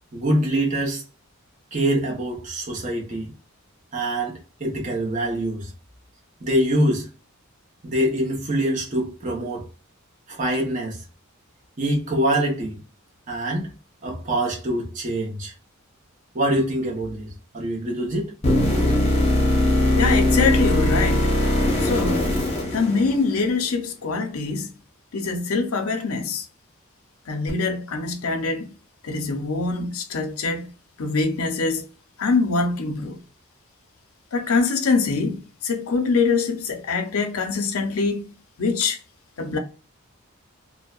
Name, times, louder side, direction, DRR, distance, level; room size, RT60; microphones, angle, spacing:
voice 1, 0.1-1.0 1.7-3.3 3.9-5.7 6.4-7.1 7.8-9.7 10.3-11.0 11.8-12.8 13.3-13.7 14.0-15.5 16.3-18.3, right 1 dB, 35° right, 0.8 m, -24 dB
sound 1, 18.4-23.5 27.5-27.6, left 1 dB, 30° left, 0.7 m, -20 dB
voice 2, 20.0-21.4 21.8-22.3 22.7-24.7 25.1-26.5 27.3-28.7 29.0-30.7 31.0-31.9 32.2-33.2 34.3-39.0 39.4-39.6, left 4 dB, 75° left, 0.6 m, -24 dB
2.7 x 2.1 x 2.3 m
head